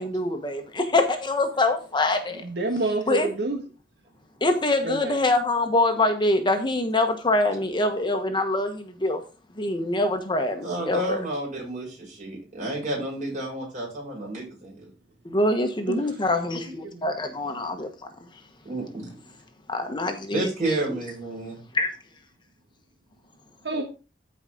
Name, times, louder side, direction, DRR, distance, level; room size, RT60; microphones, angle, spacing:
voice 1, 0.0-2.4 3.1-3.3 4.4-9.2 9.6-11.2 15.2-17.9 19.7-21.0 21.7-21.9, left 2 dB, 25° left, 6 dB, 1.2 m, -24 dB
voice 2, 2.4-3.6 4.8-5.1 15.9-16.0 16.8-17.1 23.6-23.8, right 2 dB, 70° right, 3 dB, 1.3 m, -28 dB
voice 3, 10.6-14.9 18.6-19.1 20.3-21.6, right 1 dB, 45° right, -3 dB, 6.3 m, -31 dB
14.0 x 4.9 x 3.8 m, 0.33 s
head